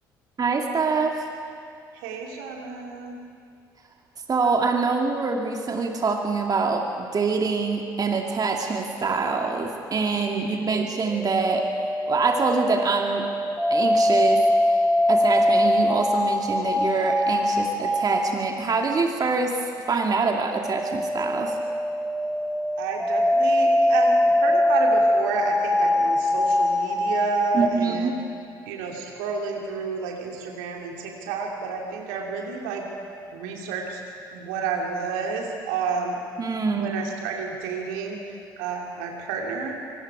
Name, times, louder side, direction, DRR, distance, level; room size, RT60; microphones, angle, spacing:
voice 1, 0.4-1.3 4.3-11.7 12.1-13.3 13.7-14.4 15.1-21.6 27.5-28.2 36.4-36.9, right 4 dB, 35° right, 2 dB, 2.4 m, -25 dB
voice 2, 1.9-3.2 10.3-10.7 22.8-24.1 24.4-28.2 28.6-32.9 33.3-34.0 34.3-36.2 36.7-39.7, right 5 dB, 70° right, 0 dB, 2.9 m, -30 dB
sound 1, 10.9-18.3 20.3-27.6, left 1 dB, ahead, 7.5 m, -22 dB
26.0 x 24.5 x 4.9 m, 2.5 s
figure-of-eight pair, 50°, 11 cm